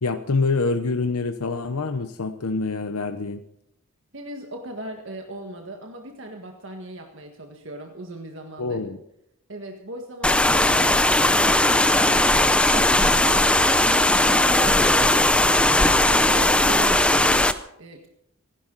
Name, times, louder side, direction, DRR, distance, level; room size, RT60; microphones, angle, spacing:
voice 1, 0.0-3.4 8.6-9.0, left 3 dB, 85° left, 8 dB, 0.8 m, -26 dB
voice 2, 4.1-8.8 9.5-13.5 13.9-15.6 16.0-17.5 17.8-18.1, right 1 dB, 60° right, 2 dB, 1.7 m, -38 dB
sound 1, 10.2-17.5, left 1 dB, 5° left, 0.6 m, -18 dB
26.0 x 12.0 x 4.0 m, 0.82 s
head